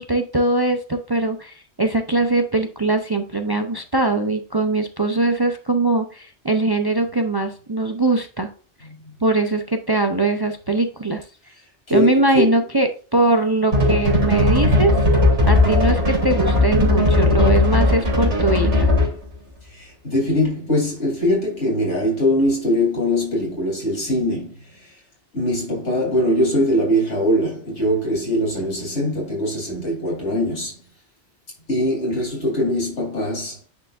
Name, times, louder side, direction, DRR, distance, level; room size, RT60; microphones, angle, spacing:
voice 1, 0.0-8.5 9.2-11.2 11.9-15.0 15.4-18.9, right 2 dB, 30° right, 0.5 m, -21 dB
voice 2, 11.9-12.6 19.6-25.0 25.3-30.8 31.7-33.7, left 1 dB, 90° left, 3.5 m, -22 dB
sound 1, 13.7-19.2, left 2 dB, 75° right, 3.0 m, -17 dB
9.4 x 4.7 x 2.5 m
omnidirectional pair, 1.2 m